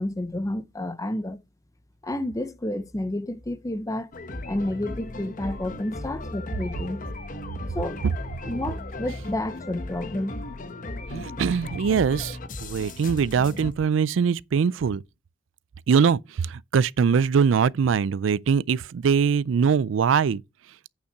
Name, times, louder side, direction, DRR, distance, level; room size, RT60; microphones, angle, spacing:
voice 1, 0.0-1.4 2.0-4.1 4.5-7.0 7.7-8.0 8.5-10.4, left 1 dB, 15° left, 0.6 m, -30 dB
sound 1, 4.1-13.7, left 2 dB, 45° left, 1.0 m, -36 dB
voice 2, 11.1-15.0 15.9-20.4, right 6 dB, 85° right, 0.4 m, -22 dB
8.8 x 5.7 x 4.6 m
head